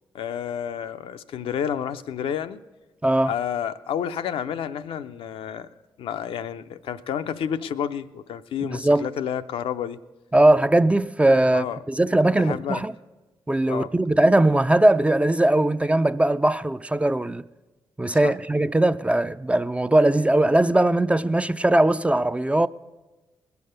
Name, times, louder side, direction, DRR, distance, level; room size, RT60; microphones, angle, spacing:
voice 1, 0.1-2.6 3.2-5.7 6.0-10.0 11.5-11.8 12.4-12.8 13.7-13.9 18.2-18.3, left 8 dB, 70° left, 0.5 m, -30 dB
voice 2, 3.0-3.3 8.7-9.1 10.3-12.9 13.5-17.4 18.0-22.7, right 1 dB, 10° right, 0.4 m, -20 dB
20.0 x 7.0 x 6.5 m
hypercardioid pair, 45°, 10 cm